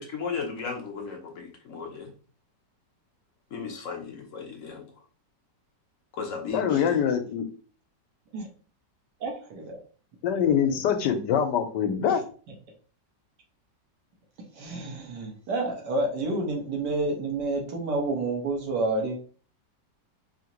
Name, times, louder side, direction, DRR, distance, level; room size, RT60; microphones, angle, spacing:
voice 1, 0.0-2.1 3.5-4.9 6.1-7.0, left 5 dB, 55° left, 3 dB, 1.0 m, -35 dB
voice 2, 6.5-7.5 10.2-12.2, left 8 dB, 80° left, 7 dB, 1.3 m, -24 dB
voice 3, 9.2-9.8 14.5-19.2, right 2 dB, 70° right, 0 dB, 1.8 m, -29 dB
4.9 x 2.8 x 2.9 m, 0.40 s
omnidirectional pair, 1.9 m